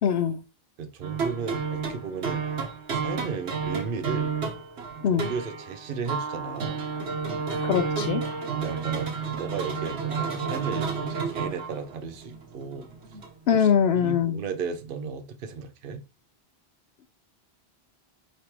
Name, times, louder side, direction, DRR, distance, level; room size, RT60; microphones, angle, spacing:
voice 1, 0.0-0.4 5.0-5.3 7.6-8.2 13.5-14.4, left 8 dB, 75° left, 0.8 m, -22 dB
voice 2, 0.8-2.4 2.9-4.3 5.1-6.8 8.5-12.9 13.5-13.7 13.9-16.0, right 5 dB, 60° right, 0.8 m, -34 dB
sound 1, 1.0-13.3, right 5 dB, 85° right, 1.2 m, -31 dB
5.0 x 3.2 x 2.9 m
omnidirectional pair, 1.1 m